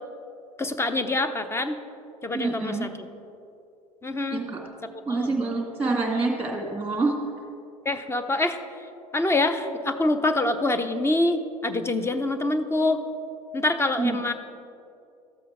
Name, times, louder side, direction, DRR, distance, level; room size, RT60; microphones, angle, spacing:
voice 1, 0.6-1.8 2.2-2.9 4.0-4.5 4.9-5.3 7.8-8.6 9.1-13.0 13.5-14.3, left 2 dB, 15° left, 10 dB, 0.6 m, -25 dB
voice 2, 2.3-2.9 4.3-4.6 5.1-7.1 14.0-14.2, right 3 dB, 10° right, 0 dB, 1.9 m, -26 dB
13.0 x 7.8 x 3.6 m, 2.6 s
hypercardioid pair, 70°, 19 cm